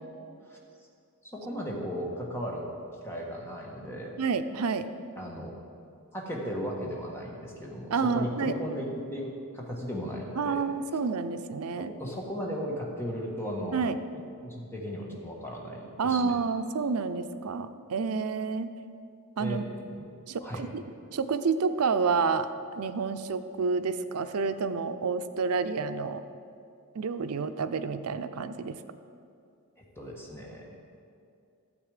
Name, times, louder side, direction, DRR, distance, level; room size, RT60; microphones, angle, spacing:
voice 1, 1.2-4.1 5.2-5.5 6.1-8.8 9.1-10.6 11.8-13.8 14.1-16.4 19.4-19.6 20.0-20.1 20.4-20.6 29.8-30.8, equal, 10° left, -2 dB, 1.5 m, -36 dB
voice 2, 4.2-4.9 7.9-8.5 10.4-11.9 13.7-14.0 16.0-18.7 19.4-19.6 20.3-20.8 21.1-26.2 26.9-28.8, right 5 dB, 80° right, 11 dB, 0.5 m, -29 dB
12.5 x 7.9 x 5.0 m, 2.5 s
head